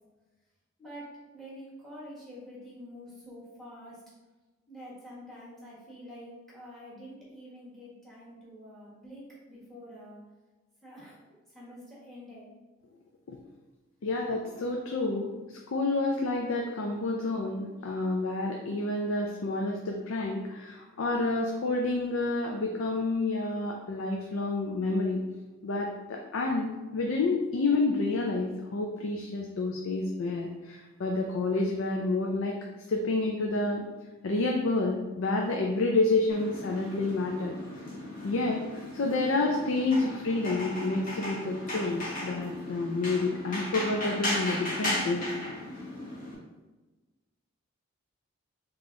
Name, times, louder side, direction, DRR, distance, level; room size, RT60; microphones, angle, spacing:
voice 1, 0.8-4.0 4.7-10.2 10.8-12.5, equal, ahead, -7 dB, 1.2 m, -47 dB
voice 2, 14.0-25.2 25.6-32.6 32.9-33.8 34.2-37.6 38.2-38.6 38.9-45.3, left 2 dB, 65° left, 1 dB, 0.4 m, -29 dB
sound 1, 36.3-46.3, left 1 dB, 40° left, 1.0 m, -36 dB
3.9 x 2.9 x 3.7 m, 1.2 s
head